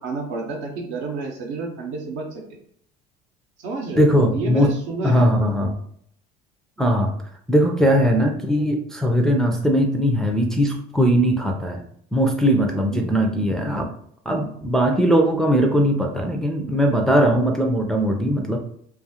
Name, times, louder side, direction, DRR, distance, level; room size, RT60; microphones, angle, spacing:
voice 1, 0.0-2.4 3.6-5.3 12.7-13.1, right 3 dB, 65° right, 1 dB, 0.7 m, -30 dB
voice 2, 4.0-4.7 5.0-5.7 6.8-7.1 7.5-11.8 12.1-13.9 14.3-18.6, equal, ahead, 1 dB, 0.4 m, -19 dB
2.4 x 2.4 x 2.7 m, 0.65 s
hypercardioid pair, 80°, 21 cm